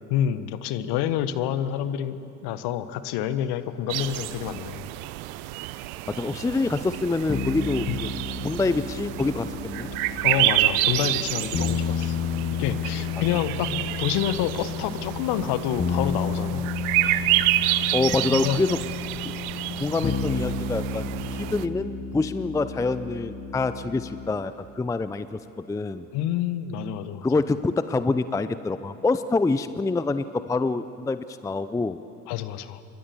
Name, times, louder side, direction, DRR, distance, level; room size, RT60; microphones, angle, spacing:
voice 1, 0.1-4.8 7.9-8.0 10.2-12.2 12.5-13.7 14.0-16.7 18.3-18.6 20.0-20.1 26.1-27.3 32.3-32.8, left 10 dB, 50° left, 13 dB, 1.5 m, -28 dB
sound 1, 3.9-21.7, right 16 dB, 55° right, 1.0 m, -29 dB
voice 2, 6.1-8.1 8.4-9.9 13.3-13.4 13.7-13.8 17.9-18.8 19.2-19.3 19.8-26.1 27.2-32.0, left 3 dB, 5° left, 14 dB, 0.6 m, -26 dB
sound 2, 7.3-24.3, left 5 dB, 20° left, 1.5 m, -32 dB
28.5 x 23.0 x 7.1 m, 2.7 s
figure-of-eight pair, 70°, 50 cm